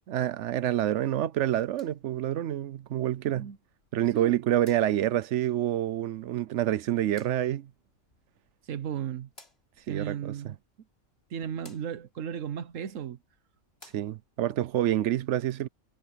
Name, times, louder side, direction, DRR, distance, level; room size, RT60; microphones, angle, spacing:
voice 1, 0.1-3.5 3.9-7.7 9.9-10.5 13.9-15.7, right 12 dB, 70° right, 0.9 m, -27 dB
sound 1, 1.4-14.5, left 2 dB, 55° left, 4.3 m, -62 dB
voice 2, 8.6-9.3 9.9-10.6 11.3-13.2, right 8 dB, 90° right, 1.3 m, -35 dB
omnidirectional pair, 1.3 m